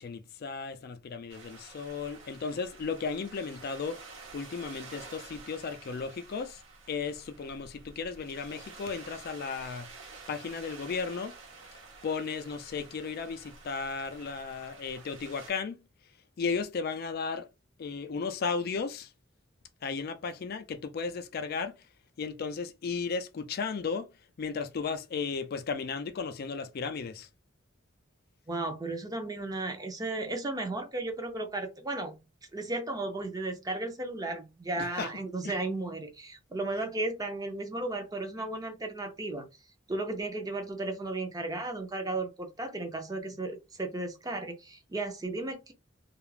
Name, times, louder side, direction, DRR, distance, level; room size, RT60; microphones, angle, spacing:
voice 1, 0.0-4.1 4.3-6.6 6.9-9.9 10.3-11.3 12.0-15.8 16.4-17.5 17.8-19.1 19.8-21.7 22.2-24.1 24.4-27.3 34.8-35.1 35.4-35.5, left 5 dB, 50° left, 0.4 m, -35 dB
sound 1, 1.3-15.5, right 4 dB, 85° right, 1.0 m, -50 dB
voice 2, 28.5-32.1 32.5-39.5 39.9-45.7, right 2 dB, 20° right, 0.5 m, -34 dB
2.3 x 2.1 x 3.1 m
head